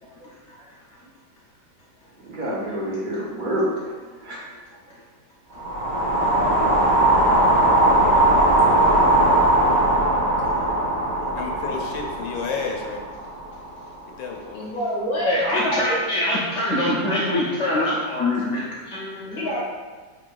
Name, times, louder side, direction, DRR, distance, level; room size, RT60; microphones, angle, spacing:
voice 1, 2.1-4.4, equal, 45° right, -6 dB, 0.6 m, -28 dB
sound 1, 5.5-13.8, right 1 dB, 30° right, 1.2 m, -19 dB
voice 2, 11.4-13.0 14.2-14.7, left 5 dB, 85° left, 1 dB, 1.3 m, -31 dB
voice 3, 14.5-15.8 19.2-19.6, equal, 40° left, -7 dB, 0.9 m, -27 dB
voice 4, 15.2-19.5, left 1 dB, 65° left, -5 dB, 0.7 m, -24 dB
4.4 x 3.8 x 2.4 m, 1.4 s
omnidirectional pair, 2.0 m